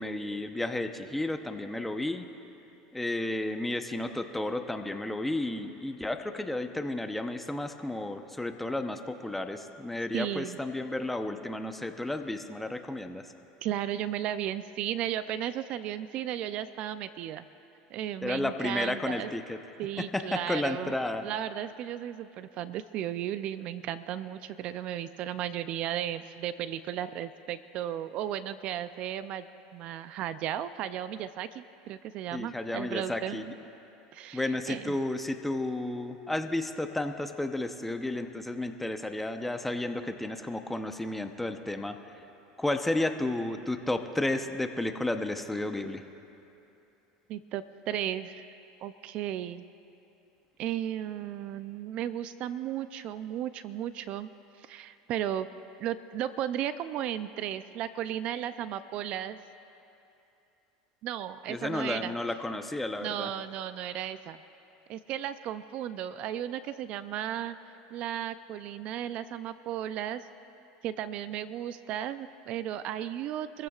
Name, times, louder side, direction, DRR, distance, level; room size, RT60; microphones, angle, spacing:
voice 1, 0.0-2.2 2.9-13.3 18.2-19.6 20.0-21.2 32.3-33.5 34.3-42.0 42.6-46.0 61.5-63.3, left 2 dB, 5° left, 6 dB, 0.8 m, -32 dB
voice 2, 10.1-10.6 13.6-17.4 17.9-19.3 19.8-21.0 21.2-29.5 29.7-33.4 34.1-35.0 47.3-48.5 48.8-49.6 50.6-54.3 54.6-55.5 55.8-59.4 61.0-62.1 63.0-64.4 64.9-67.6 67.9-70.3 70.8-73.7, right 11 dB, 55° right, 13 dB, 0.4 m, -35 dB
25.5 x 15.0 x 2.4 m, 2.8 s
supercardioid pair, 110°, 2 cm